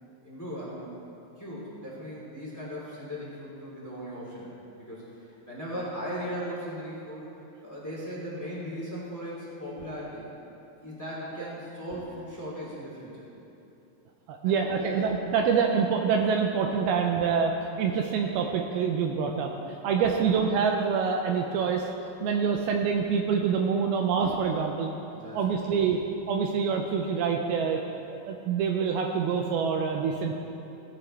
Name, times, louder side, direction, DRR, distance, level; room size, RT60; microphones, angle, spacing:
voice 1, 0.2-0.9 1.4-7.3 7.6-10.2 10.8-13.2 14.4-15.0 20.1-20.3 25.1-25.8, equal, 5° left, -7 dB, 2.5 m, -38 dB
voice 2, 14.3-17.5 17.8-21.9 22.2-24.9 25.3-26.0 26.3-27.8 28.1-30.4, right 6 dB, 80° right, 2 dB, 2.4 m, -26 dB
17.5 x 11.0 x 3.3 m, 2.9 s
omnidirectional pair, 4.6 m